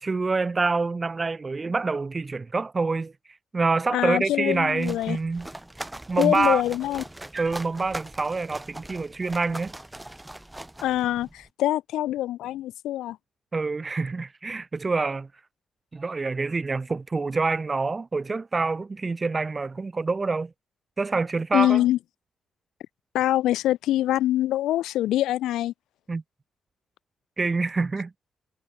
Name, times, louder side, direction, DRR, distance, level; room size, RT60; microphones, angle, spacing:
voice 1, 0.0-3.1 3.5-5.5 6.1-6.6 7.3-9.7 13.5-15.3 15.9-20.5 21.0-21.8 26.1-26.2 27.4-28.1, right 3 dB, 40° right, 1.2 m, -26 dB
voice 2, 3.9-5.2 6.2-7.0 10.8-13.2 21.5-22.0 23.1-25.7, left 14 dB, 85° left, 4.4 m, -24 dB
sound 1, 4.5-11.5, right 1 dB, 15° right, 5.2 m, -41 dB
hypercardioid pair, 45°, 0 cm